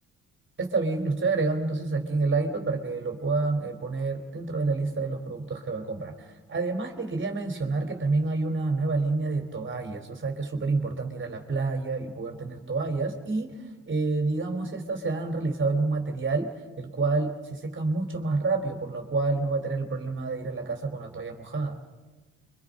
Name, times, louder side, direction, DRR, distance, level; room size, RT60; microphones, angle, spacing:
voice 1, 0.6-13.6 13.9-16.5 16.8-21.8, right 3 dB, 40° right, 5 dB, 3.1 m, -28 dB
28.5 x 24.0 x 5.2 m, 1.2 s
cardioid pair, 90°, 30 cm